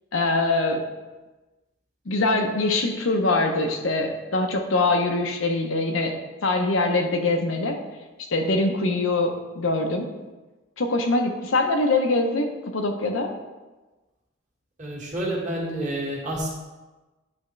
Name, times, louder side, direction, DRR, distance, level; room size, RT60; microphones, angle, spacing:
voice 1, 0.1-0.8 2.1-6.2 6.4-7.8 8.3-10.1 10.8-13.3, left 2 dB, 75° left, 4 dB, 0.7 m, -23 dB
voice 2, 14.8-16.5, right 1 dB, 35° right, -4 dB, 1.6 m, -29 dB
9.7 x 3.5 x 3.2 m, 1.2 s
head